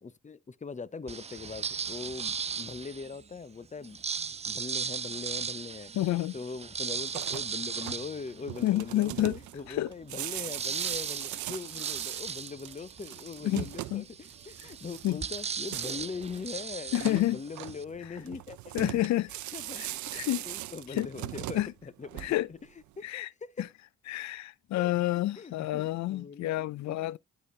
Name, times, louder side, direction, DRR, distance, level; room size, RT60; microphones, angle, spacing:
voice 1, 0.0-6.0 6.3-18.7 19.3-19.9 20.1-22.6 23.0-23.6 24.8-25.0 25.4-27.2, left 4 dB, 25° left, 0.8 m, -41 dB
sound 1, 1.1-3.2 3.8-9.0 9.5-9.6 9.8-17.8, right 6 dB, 25° right, 0.4 m, -37 dB
voice 2, 5.9-6.3 8.6-9.4 9.7-9.9 13.4-14.0 15.0-15.2 16.9-17.4 18.7-19.3 19.8-19.9 20.1-20.5 20.9-21.1 21.5-21.7 22.2-22.5 23.0-23.3 24.1-27.2, left 15 dB, 70° left, 0.5 m, -29 dB
sound 2, 7.0-22.7, right 15 dB, 80° right, 0.6 m, -40 dB
11.0 x 3.9 x 3.8 m
cardioid pair, 70°, 29 cm